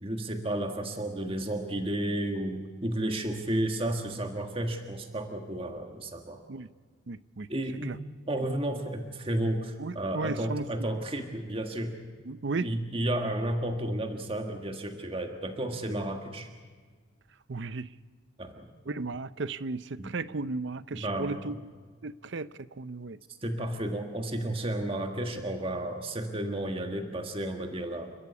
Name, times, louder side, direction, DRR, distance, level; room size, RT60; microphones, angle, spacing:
voice 1, 0.0-6.4 7.5-8.0 8.3-12.0 12.6-16.5 18.4-18.7 20.0-20.1 20.9-21.6 23.4-28.1, right 1 dB, 25° right, 4 dB, 1.6 m, -32 dB
voice 2, 7.1-7.5 7.8-8.0 9.8-10.6 12.3-12.7 17.5-17.9 18.9-21.6 22.0-23.2, right 3 dB, 60° right, 16 dB, 0.6 m, -35 dB
29.5 x 13.5 x 8.4 m, 1.5 s
head